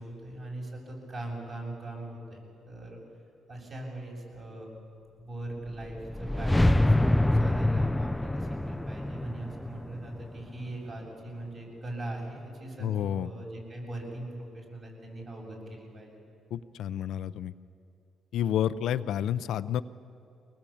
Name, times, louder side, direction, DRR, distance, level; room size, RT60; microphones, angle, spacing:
voice 1, 0.0-2.4 2.7-3.0 3.5-4.7 5.2-16.2, right 1 dB, 45° right, -1 dB, 7.3 m, -40 dB
sound 1, 5.8-10.9, left 1 dB, 10° left, 0.5 m, -26 dB
voice 2, 12.8-13.3 16.5-17.5 18.3-19.8, left 10 dB, 80° left, 13 dB, 0.6 m, -30 dB
24.0 x 19.0 x 8.6 m, 2.6 s
cardioid pair, 90°, 0 cm